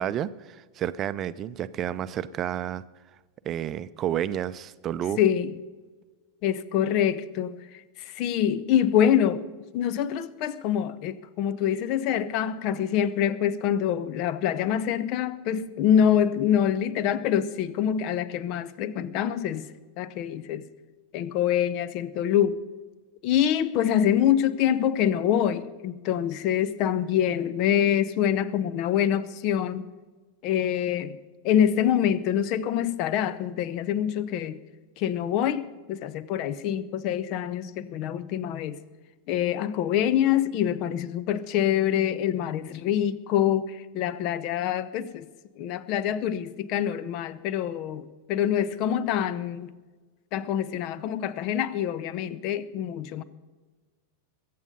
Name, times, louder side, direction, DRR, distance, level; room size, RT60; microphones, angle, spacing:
voice 1, 0.0-2.8 3.4-5.2, right 10 dB, 30° right, 0.6 m, -30 dB
voice 2, 5.2-5.5 6.4-9.4 9.7-19.7 20.0-20.6 21.1-22.6 23.2-29.9 30.4-31.2 31.4-34.6 35.0-38.8 39.3-45.3 45.6-49.7 50.3-53.2, left 9 dB, 45° left, 0.8 m, -25 dB
22.0 x 8.5 x 5.5 m
figure-of-eight pair, 90°, 0 cm